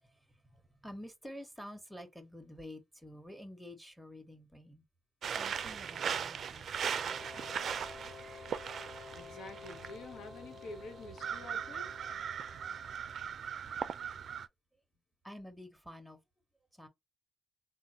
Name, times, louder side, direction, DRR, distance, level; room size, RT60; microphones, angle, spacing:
voice 1, 0.0-4.8 5.4-7.3 15.2-16.2 16.7-16.9, left 1 dB, ahead, 1.0 m, -50 dB
sound 1, 5.2-14.5, right 7 dB, 55° right, 0.4 m, -39 dB
sound 2, 6.7-13.3, left 5 dB, 40° left, 0.4 m, -52 dB
voice 2, 9.1-12.1, left 2 dB, 75° left, 1.1 m, -48 dB
3.7 x 2.2 x 2.9 m
cardioid pair, 90°, 0 cm